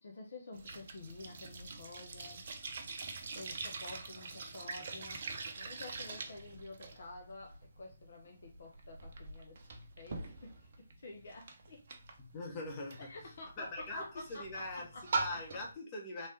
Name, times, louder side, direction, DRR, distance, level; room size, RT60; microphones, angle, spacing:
voice 1, 0.0-2.5 3.3-9.6 10.0-11.9 13.1-15.0 15.3-15.4, left 2 dB, 50° left, 0.8 m, -50 dB
sound 1, 0.5-15.7, right 4 dB, 45° right, 0.6 m, -44 dB
voice 2, 12.3-13.1 13.6-14.9 15.1-16.3, left 2 dB, 25° left, 1.0 m, -42 dB
3.2 x 3.2 x 2.7 m
figure-of-eight pair, 140°, 0 cm